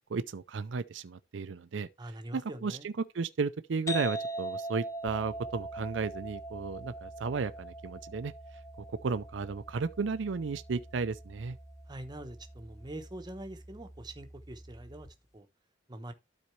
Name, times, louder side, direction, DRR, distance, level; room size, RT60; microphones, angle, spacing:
voice 1, 0.1-1.9 2.3-8.3 8.9-11.6, right 4 dB, 70° right, 0.5 m, -34 dB
voice 2, 2.0-2.9 11.9-15.1 15.3-15.5 15.9-16.1, right 1 dB, 20° right, 0.9 m, -44 dB
sound 1, 3.9-11.3, right 1 dB, 15° left, 0.5 m, -40 dB
sound 2, 5.1-15.1, right 1 dB, 60° left, 3.0 m, -51 dB
12.5 x 4.2 x 3.1 m
head